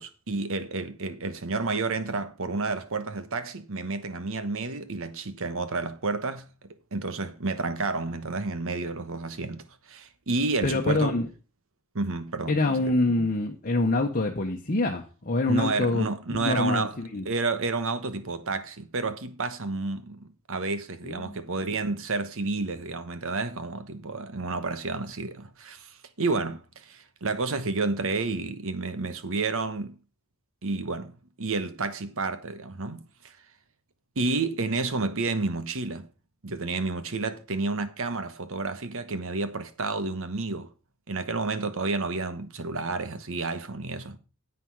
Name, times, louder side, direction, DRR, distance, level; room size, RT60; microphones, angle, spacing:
voice 1, 0.0-6.4 6.9-9.6 10.3-11.2 11.9-12.6 15.5-17.0 17.2-20.2 20.5-25.3 25.7-25.8 26.2-26.6 27.2-29.9 30.6-31.1 31.4-33.0 34.2-36.0 36.4-40.7 41.1-44.1, right 3 dB, 65° right, 1.2 m, -30 dB
voice 2, 10.6-11.3 12.5-17.3 21.0-21.4, left 2 dB, 40° left, 1.1 m, -26 dB
9.7 x 8.4 x 4.8 m
head